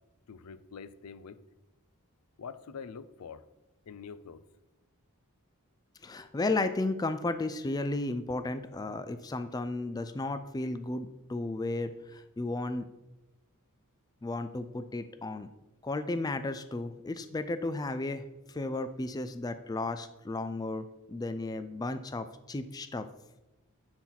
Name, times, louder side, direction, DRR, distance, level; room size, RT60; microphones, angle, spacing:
voice 1, 0.3-1.4 2.4-3.4 3.9-4.5, left 6 dB, 85° left, 14 dB, 0.5 m, -45 dB
voice 2, 6.0-12.9 14.2-15.5 15.8-18.2 18.6-23.1, left 2 dB, 15° left, 10 dB, 0.3 m, -34 dB
10.0 x 4.4 x 4.0 m, 0.98 s
head